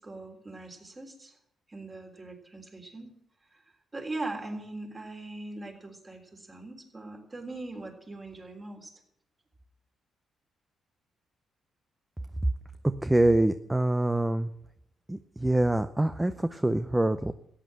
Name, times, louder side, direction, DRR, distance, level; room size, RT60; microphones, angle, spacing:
voice 1, 0.0-1.3 1.7-3.1 3.5-3.6 3.9-8.9, right 2 dB, 25° right, 2 dB, 3.6 m, -40 dB
voice 2, 13.0-14.5 15.1-17.3, right 1 dB, 10° right, 10 dB, 0.6 m, -25 dB
14.0 x 9.2 x 7.7 m, 0.71 s
cardioid pair, 100°, 0 cm